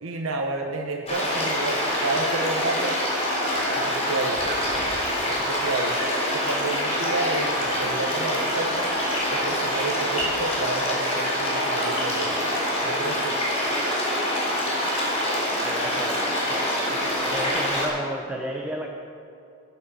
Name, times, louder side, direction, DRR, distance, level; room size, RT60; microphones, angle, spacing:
voice 1, 0.0-3.0 3.7-4.4 5.3-6.0 6.3-8.9 9.3-12.4 12.8-13.4, right 2 dB, 75° right, 2 dB, 1.0 m, -31 dB
sound 1, 1.1-17.9, equal, 30° left, 3.8 m, -25 dB
voice 2, 15.6-18.9, right 1 dB, 5° right, 1 dB, 0.8 m, -34 dB
14.0 x 9.5 x 5.4 m, 2.5 s
head